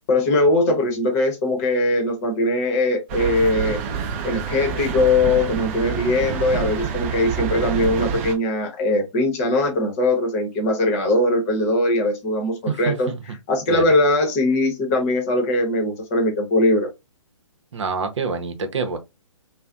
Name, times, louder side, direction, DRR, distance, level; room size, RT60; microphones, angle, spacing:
voice 1, 0.1-3.8 4.2-16.9, left 2 dB, 30° left, 0.8 m, -21 dB
sound 1, 3.1-8.3, right 7 dB, 25° right, 0.5 m, -27 dB
voice 2, 12.7-13.2 13.7-13.9 17.7-19.0, right 5 dB, 70° right, 0.8 m, -26 dB
3.2 x 2.1 x 2.4 m
hypercardioid pair, 145°, 16 cm